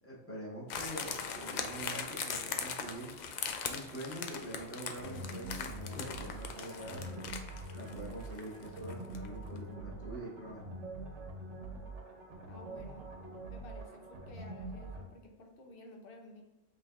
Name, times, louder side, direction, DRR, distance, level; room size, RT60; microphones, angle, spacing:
voice 1, 0.0-3.2 3.7-7.3 7.7-10.7, right 1 dB, 10° left, -6 dB, 1.3 m, -45 dB
sound 1, 0.7-9.3 9.6-9.7, left 6 dB, 80° left, 0.4 m, -40 dB
sound 2, 5.0-15.1, right 1 dB, 70° right, 1.1 m, -45 dB
voice 2, 12.4-13.1 13.5-16.4, left 1 dB, 50° left, 2 dB, 0.8 m, -53 dB
5.6 x 3.2 x 2.5 m, 1.0 s
omnidirectional pair, 1.3 m